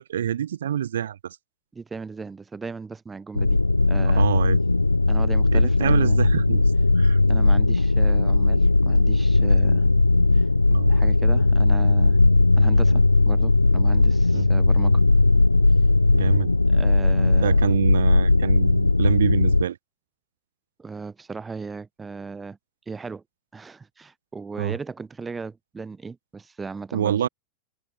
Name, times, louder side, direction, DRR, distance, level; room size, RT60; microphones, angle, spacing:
voice 1, 0.0-1.4 4.1-4.6 5.5-6.6 7.0-7.2 10.7-10.9 14.3-14.5 16.1-16.5 17.4-19.8 24.6-24.8 26.9-27.3, right 10 dB, 65° right, 5.7 m, -26 dB
voice 2, 1.7-3.6 3.9-4.3 5.1-6.2 7.3-9.9 10.3-10.4 10.9-12.2 12.6-15.0 16.7-17.5 20.8-22.6 22.9-23.2 23.5-27.3, right 4 dB, 15° right, 7.8 m, -37 dB
sound 1, 3.3-19.6, left 2 dB, 85° left, 0.5 m, -18 dB
figure-of-eight pair, 90°, 0 cm